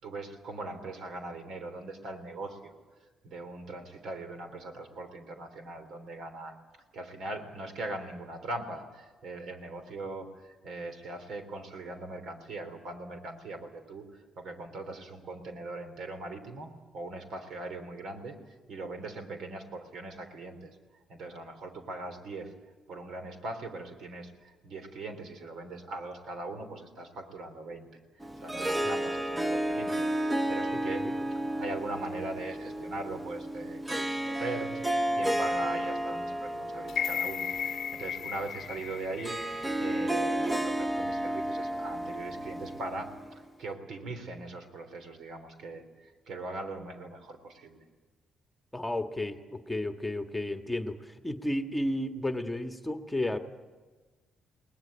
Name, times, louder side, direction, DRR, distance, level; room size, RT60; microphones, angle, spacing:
voice 1, 0.0-2.7 3.2-6.6 6.9-18.4 18.7-20.8 21.1-22.5 22.9-27.9 28.4-31.1 31.6-39.4 39.8-47.8, right 2 dB, 70° right, 8 dB, 3.5 m, -40 dB
Harp, 28.2-43.5, right 1 dB, 15° right, 0.9 m, -32 dB
sound 1, 36.9-41.0 41.4-41.5, left 8 dB, 60° left, 0.7 m, -36 dB
voice 2, 48.7-53.4, left 1 dB, 10° left, 6 dB, 1.5 m, -33 dB
21.5 x 19.0 x 9.2 m, 1.3 s
cardioid pair, 90°, 0 cm